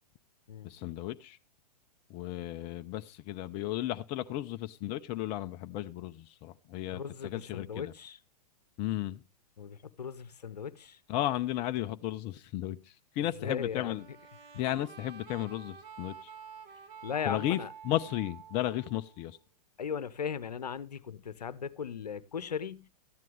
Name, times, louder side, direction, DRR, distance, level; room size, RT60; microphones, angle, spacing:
voice 1, 0.6-1.4 2.1-7.9 8.8-9.2 11.1-14.1 14.6-16.3 17.3-19.4, left 14 dB, 30° left, 0.6 m, -34 dB
voice 2, 6.9-8.2 9.6-11.0 13.4-14.0 17.0-17.7 19.8-22.9, left 7 dB, 75° left, 0.8 m, -38 dB
sound 1, 13.9-19.4, right 7 dB, 30° right, 1.5 m, -49 dB
13.5 x 10.5 x 3.3 m
figure-of-eight pair, 110°, 21 cm